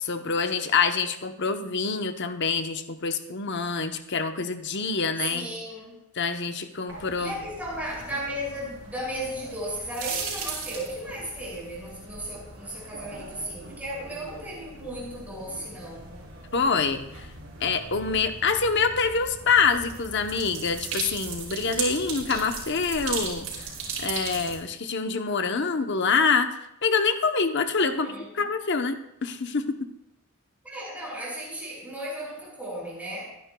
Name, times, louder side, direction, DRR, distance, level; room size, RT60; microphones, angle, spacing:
voice 1, 0.1-5.5 6.2-7.3 16.5-17.0 17.6-23.5 24.0-26.5 26.8-28.1 28.3-29.0 29.2-29.6, left 5 dB, 55° left, 7 dB, 0.8 m, -25 dB
voice 2, 5.2-6.0 7.2-16.2 27.8-28.3 30.6-33.2, equal, 5° right, -5 dB, 6.0 m, -35 dB
sound 1, 6.9-24.6, right 4 dB, 75° right, 5.0 m, -38 dB
24.0 x 10.5 x 2.3 m, 0.83 s
head